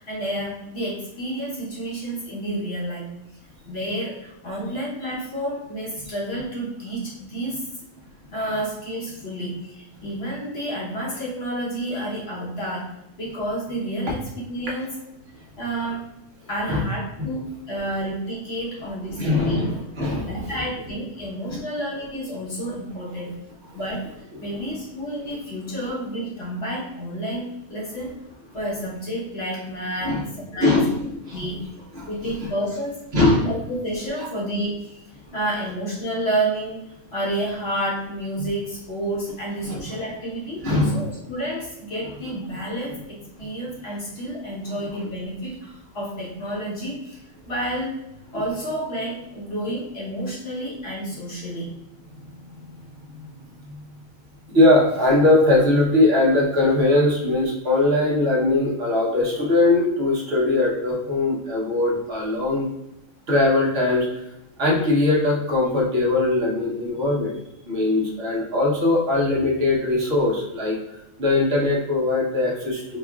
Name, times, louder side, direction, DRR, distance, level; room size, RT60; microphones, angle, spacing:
voice 1, 0.0-3.1 3.7-7.7 8.3-14.2 14.5-14.9 15.6-16.1 16.5-19.7 20.2-23.4 23.7-24.1 24.4-28.1 28.5-30.8 31.3-31.6 32.1-33.0 33.4-35.0 35.3-47.2 47.4-48.1 48.3-51.7, right 1 dB, 50° left, -6 dB, 1.2 m, -30 dB
voice 2, 19.1-20.5 21.5-21.6 23.7-23.8 30.0-30.2 30.5-31.4 31.9-32.5 33.1-33.5 38.4-38.5 39.7-39.8 40.6-41.0 52.6-52.7 53.6-53.7 54.5-62.7 63.3-64.2 64.6-67.3 67.6-73.0, left 2 dB, 50° right, -3 dB, 1.0 m, -21 dB
4.4 x 2.3 x 2.3 m, 0.87 s
omnidirectional pair, 1.4 m